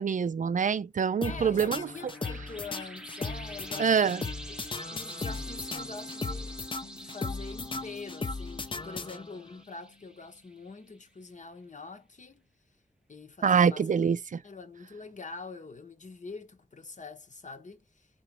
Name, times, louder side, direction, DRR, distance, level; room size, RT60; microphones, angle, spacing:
voice 1, 0.0-1.9 3.8-4.2 13.4-14.2, right 6 dB, 55° right, 0.4 m, -25 dB
voice 2, 1.2-3.9 4.5-4.6 4.9-6.5 6.9-12.4 13.1-14.1 14.4-18.1, left 4 dB, 55° left, 0.8 m, -44 dB
sound 1, 1.2-9.5, left 3 dB, 35° left, 0.5 m, -37 dB
sound 2, 1.6-10.7, right 1 dB, 5° right, 0.6 m, -46 dB
sound 3, 6.8-11.5, left 5 dB, 90° left, 1.2 m, -59 dB
3.0 x 2.8 x 4.5 m
wide cardioid pair, 80°, 15 cm